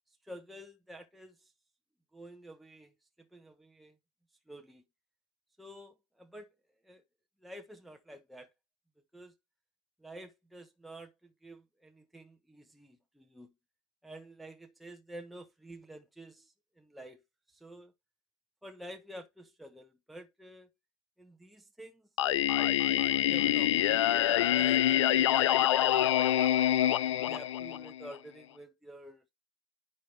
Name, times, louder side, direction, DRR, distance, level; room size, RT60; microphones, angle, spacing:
voice 1, 0.2-1.5 2.1-4.0 4.5-4.8 5.6-6.5 6.8-7.0 7.4-8.5 9.1-9.3 10.0-13.5 14.0-17.2 17.5-17.9 18.6-20.7 21.2-26.1 27.0-29.3, right 1 dB, ahead, 0.9 m, -50 dB
Singing, 22.2-28.1, left 12 dB, 70° left, 0.5 m, -26 dB
10.5 x 4.2 x 3.3 m
hypercardioid pair, 115°, 16 cm